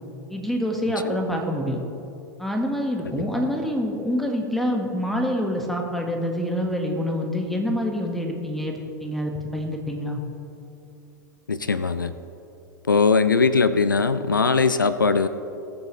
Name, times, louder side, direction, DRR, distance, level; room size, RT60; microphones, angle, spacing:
voice 1, 0.3-1.8 2.4-10.2, equal, ahead, 2 dB, 1.5 m, -26 dB
voice 2, 11.5-12.1 12.8-15.3, left 4 dB, 90° left, 13 dB, 0.4 m, -20 dB
20.5 x 7.0 x 3.2 m, 2.8 s
figure-of-eight pair, 95°, 10 cm